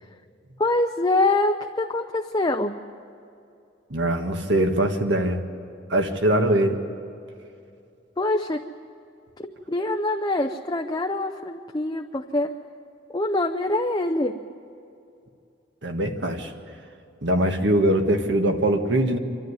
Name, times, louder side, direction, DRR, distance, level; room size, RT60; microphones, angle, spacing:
voice 1, 0.6-2.8 8.2-8.6 9.4-12.5 13.1-14.4, left 2 dB, 20° left, 4 dB, 0.6 m, -24 dB
voice 2, 3.9-5.4 5.9-6.8 15.8-16.5 17.2-19.2, right 1 dB, 65° right, 5 dB, 1.7 m, -22 dB
25.5 x 13.0 x 9.8 m, 2.6 s
head